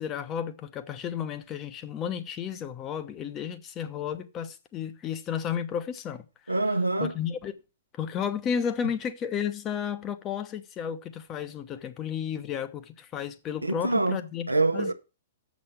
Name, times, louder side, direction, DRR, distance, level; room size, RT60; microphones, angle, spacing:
voice 1, 0.0-6.2 7.0-7.6 7.9-14.9, left 8 dB, 25° left, 0.9 m, -33 dB
voice 2, 6.5-7.1 13.6-14.2 14.5-14.9, right 2 dB, 85° right, 0.8 m, -25 dB
7.5 x 6.3 x 7.0 m
figure-of-eight pair, 110°, 0 cm